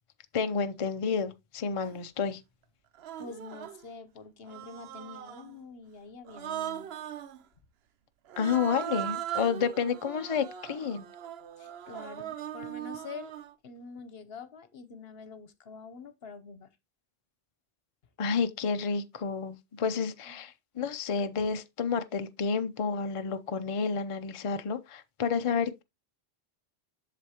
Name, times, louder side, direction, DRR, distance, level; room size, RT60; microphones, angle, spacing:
voice 1, 0.3-2.4 8.4-11.1 18.2-25.8, left 5 dB, 40° left, 0.5 m, -30 dB
Human voice, 1.8-2.0 2.9-3.8 4.5-5.5 6.3-7.4 8.3-13.5, right 11 dB, 75° right, 0.9 m, -39 dB
voice 2, 3.2-6.9 11.6-13.4 13.6-16.7 20.3-20.4, left 4 dB, 65° left, 1.1 m, -46 dB
8.0 x 6.8 x 2.9 m
omnidirectional pair, 1.1 m